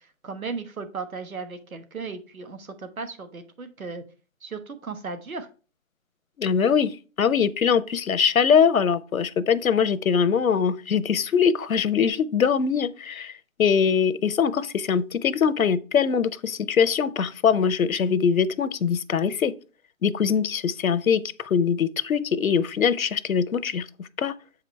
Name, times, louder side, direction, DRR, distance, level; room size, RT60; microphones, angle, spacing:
voice 1, 0.2-4.0 4.4-5.5, right 4 dB, 85° right, 1.4 m, -36 dB
voice 2, 6.4-13.3 13.6-19.5 20.0-23.8 24.2-24.3, left 7 dB, 85° left, 0.7 m, -22 dB
7.5 x 4.9 x 3.2 m
hypercardioid pair, 175°, 41 cm